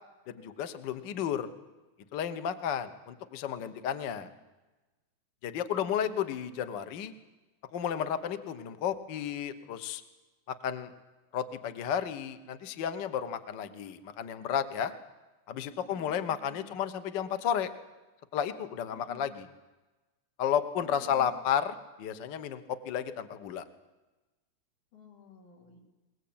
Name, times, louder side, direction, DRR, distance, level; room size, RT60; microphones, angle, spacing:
voice 1, 0.3-1.5 2.1-4.3 5.4-7.1 7.7-10.0 10.5-10.9 11.3-14.9 15.5-17.7 18.3-19.5 20.4-23.6, left 8 dB, 60° left, 9 dB, 1.2 m, -32 dB
voice 2, 5.7-6.4 15.8-16.8 18.9-19.3 20.8-21.4 24.9-25.8, left 6 dB, 85° left, -1 dB, 5.1 m, -53 dB
21.5 x 19.5 x 8.7 m, 1.1 s
omnidirectional pair, 3.4 m